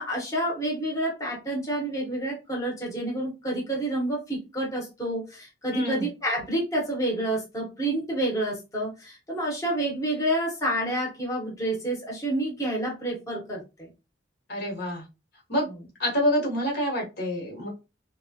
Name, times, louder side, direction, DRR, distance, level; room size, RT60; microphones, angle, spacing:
voice 1, 0.0-13.9, right 1 dB, 20° left, -2 dB, 0.9 m, -29 dB
voice 2, 5.7-6.1 14.5-15.0 15.5-15.7 16.0-17.7, equal, 65° left, 0 dB, 1.2 m, -27 dB
2.9 x 2.2 x 2.7 m, 0.26 s
head